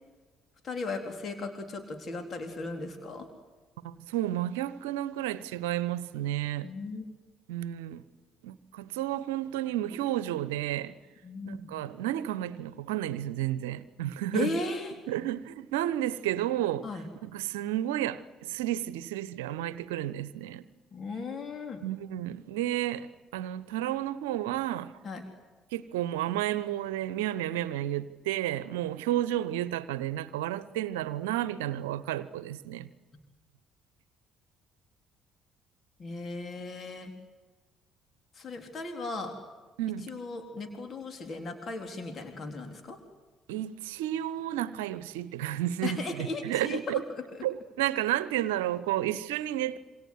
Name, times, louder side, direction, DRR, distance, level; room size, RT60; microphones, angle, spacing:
voice 1, 0.6-3.3 6.6-7.1 11.2-11.8 14.3-14.9 16.8-17.1 20.9-21.8 25.0-25.2 36.0-37.1 38.3-39.4 40.0-43.0 45.8-47.4, left 3 dB, 40° left, 4.0 m, -36 dB
voice 2, 3.8-6.7 7.5-8.0 8.4-10.9 11.4-14.6 15.1-16.9 17.2-20.6 21.8-24.9 25.7-32.9 39.8-40.1 43.5-47.0 47.4-49.8, right 13 dB, 70° right, 1.0 m, -32 dB
27.5 x 26.0 x 8.0 m
figure-of-eight pair, 50°, 0 cm